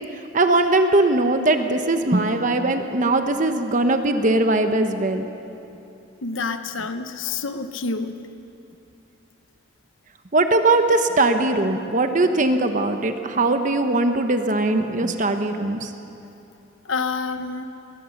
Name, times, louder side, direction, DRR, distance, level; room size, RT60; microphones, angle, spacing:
voice 1, 0.3-5.3 10.3-15.9, right 2 dB, 40° right, 7 dB, 1.0 m, -20 dB
voice 2, 6.2-8.1 16.8-17.6, left 4 dB, 75° left, 9 dB, 1.0 m, -28 dB
22.0 x 19.0 x 6.6 m, 2.8 s
head